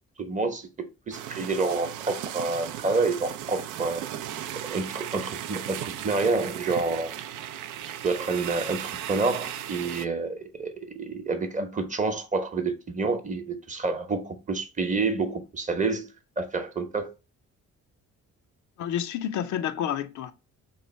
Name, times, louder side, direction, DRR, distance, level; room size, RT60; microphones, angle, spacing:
voice 1, 0.2-4.0 4.7-7.1 8.0-16.1 16.4-17.1, right 3 dB, 25° right, 0.8 m, -28 dB
sound 1, 1.1-10.1, right 11 dB, 80° right, 0.4 m, -36 dB
voice 2, 18.8-20.3, left 9 dB, 70° left, 0.5 m, -29 dB
3.1 x 2.4 x 4.2 m
cardioid pair, 90°, 30 cm